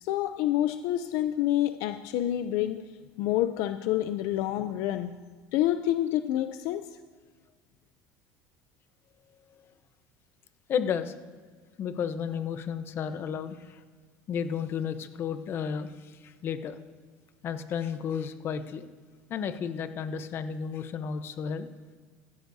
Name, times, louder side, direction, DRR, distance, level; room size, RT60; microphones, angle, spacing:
voice 1, 0.0-2.9 3.2-5.2 5.5-6.9, left 13 dB, 70° left, 10 dB, 0.5 m, -28 dB
voice 2, 10.7-11.1 11.8-13.8 14.3-16.8 17.4-18.9 19.3-21.7, left 7 dB, 45° left, 10 dB, 0.9 m, -32 dB
16.0 x 13.5 x 2.7 m, 1.5 s
supercardioid pair, 120°, 6 cm